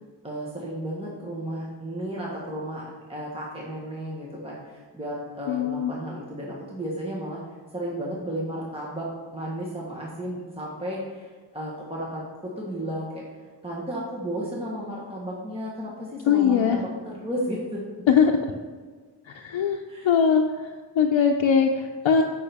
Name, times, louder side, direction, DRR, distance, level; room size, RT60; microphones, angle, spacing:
voice 1, 0.2-2.8 3.1-7.4 7.7-9.1 9.3-13.2 13.6-17.8 19.9-20.1, equal, 10° right, -4 dB, 1.3 m, -33 dB
voice 2, 5.5-5.9 16.3-16.8 18.1-18.3 19.3-20.4 21.0-22.2, left 7 dB, 85° left, 2 dB, 0.6 m, -20 dB
8.4 x 5.6 x 3.5 m, 1.5 s
wide cardioid pair, 120°, 45 cm